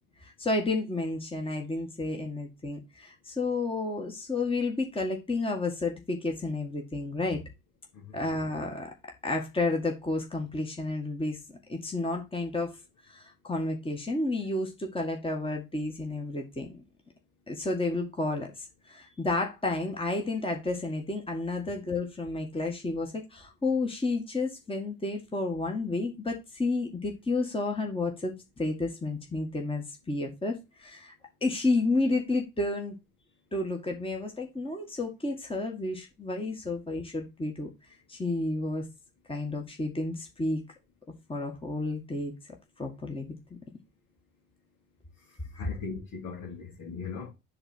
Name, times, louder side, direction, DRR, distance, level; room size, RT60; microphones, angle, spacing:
voice 1, 0.2-7.4 8.1-8.9 9.2-11.4 11.7-12.7 13.1-16.8 17.5-31.1 31.4-33.0 33.5-37.7 38.1-38.9 39.3-40.6 41.3-42.3 42.8-43.6, left 2 dB, 15° left, 1.8 m, -31 dB
voice 2, 45.2-47.3, left 5 dB, 55° left, 2.5 m, -40 dB
7.9 x 3.4 x 5.8 m
figure-of-eight pair, 50°, 39 cm